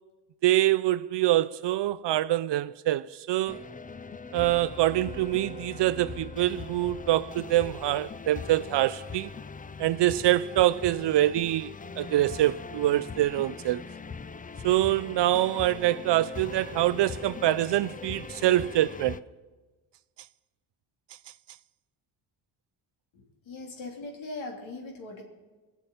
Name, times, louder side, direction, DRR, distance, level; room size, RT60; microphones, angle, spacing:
voice 1, 0.4-3.6 4.3-9.3 9.8-11.7 12.0-13.8 14.6-19.2, right 14 dB, 60° right, 0.6 m, -25 dB
sound 1, 3.5-19.2, left 5 dB, 20° left, 0.4 m, -41 dB
voice 2, 23.1-25.2, left 2 dB, 70° left, 2.9 m, -40 dB
20.0 x 7.1 x 8.8 m
cardioid pair, 90°, 49 cm